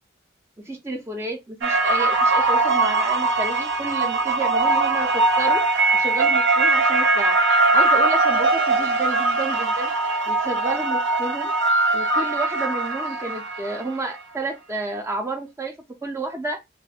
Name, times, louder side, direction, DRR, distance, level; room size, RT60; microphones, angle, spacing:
voice 1, 0.6-5.6 5.9-7.4 7.7-9.9 10.3-11.5 11.9-15.7 16.0-16.6, right 2 dB, 15° right, 0.4 m, -31 dB
sound 1, 1.6-13.9, right 3 dB, 70° right, 0.6 m, -21 dB
2.4 x 2.1 x 3.3 m
head